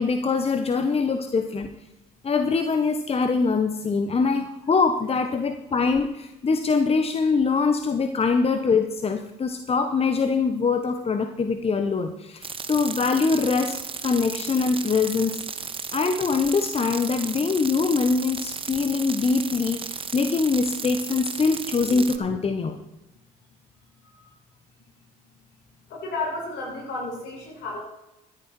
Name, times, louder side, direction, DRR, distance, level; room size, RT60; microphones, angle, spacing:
voice 1, 0.0-1.7 2.2-15.4 15.9-22.8, left 4 dB, 35° left, 7 dB, 1.1 m, -23 dB
sound 1, 12.4-22.2, right 5 dB, 30° right, 1.1 m, -34 dB
voice 2, 24.0-24.3 25.9-27.8, left 2 dB, 70° left, -2 dB, 5.7 m, -32 dB
14.0 x 10.5 x 4.4 m, 0.93 s
hypercardioid pair, 60°, 18 cm